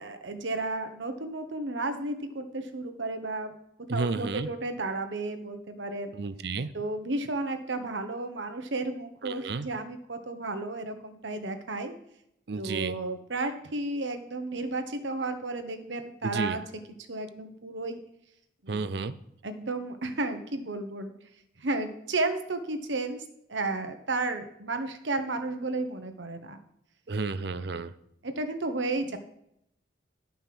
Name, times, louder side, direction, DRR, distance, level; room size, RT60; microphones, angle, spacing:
voice 1, 0.0-3.5 3.9-6.1 6.7-11.9 12.6-16.6 17.1-18.0 18.6-18.9 19.4-21.1 21.6-23.2 23.5-26.6 28.2-29.2, right 2 dB, 80° right, 7 dB, 1.2 m, -33 dB
voice 2, 3.9-4.5 6.1-6.7 9.2-9.7 12.5-13.0 16.2-16.6 18.7-19.1 27.1-27.9, right 4 dB, 60° right, 14 dB, 0.5 m, -32 dB
11.5 x 5.4 x 6.0 m, 0.77 s
head